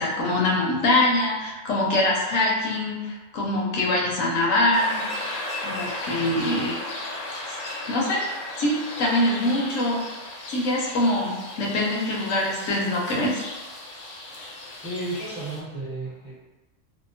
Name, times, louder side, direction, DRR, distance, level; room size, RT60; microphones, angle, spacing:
voice 1, 0.0-5.1 5.6-6.8 7.9-8.2 8.6-10.0 10.5-13.4, left 1 dB, 85° left, -3 dB, 1.0 m, -24 dB
sound 1, 4.7-15.6, left 2 dB, 60° left, 0.7 m, -35 dB
voice 2, 14.8-16.4, right 2 dB, 10° right, -10 dB, 0.7 m, -33 dB
2.7 x 2.0 x 2.6 m, 1.2 s
omnidirectional pair, 1.3 m